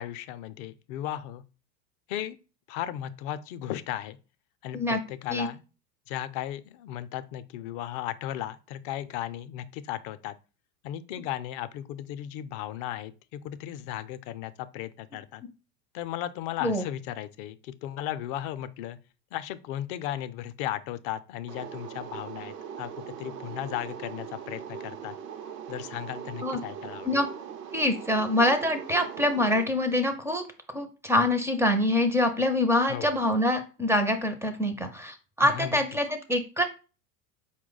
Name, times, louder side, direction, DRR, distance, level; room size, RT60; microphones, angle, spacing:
voice 1, 0.0-1.4 2.1-2.4 2.7-4.2 4.6-5.6 6.1-10.3 10.8-15.4 15.9-19.0 19.3-25.2 25.7-27.1 32.9-33.1 35.4-35.8, left 12 dB, 50° left, 0.5 m, -36 dB
sound 1, 21.5-29.6, right 8 dB, 85° right, 0.7 m, -40 dB
voice 2, 27.7-36.7, left 1 dB, 5° right, 0.4 m, -25 dB
4.5 x 2.2 x 3.8 m
hypercardioid pair, 90°, 47 cm